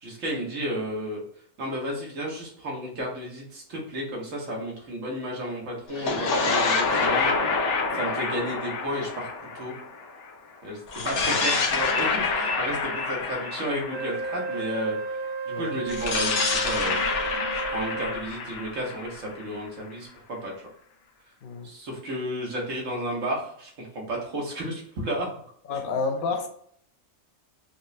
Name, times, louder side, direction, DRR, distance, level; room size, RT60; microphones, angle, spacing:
voice 1, 0.0-1.2 1.6-9.3 9.5-9.8 10.6-17.2 17.5-20.5 21.6-25.3 25.7-26.1, equal, 85° right, -2 dB, 1.5 m, -33 dB
sound 1, 5.9-10.3 10.9-14.8 15.9-19.7, left 4 dB, 70° left, 1.0 m, -27 dB
voice 2, 11.0-11.4 15.5-15.8 21.4-21.7 25.7-26.5, left 4 dB, 55° left, 4 dB, 0.7 m, -30 dB
Wind instrument woodwind instrument, 13.9-18.3, right 4 dB, 55° right, 0.6 m, -33 dB
5.2 x 2.1 x 2.6 m, 0.63 s
omnidirectional pair, 1.3 m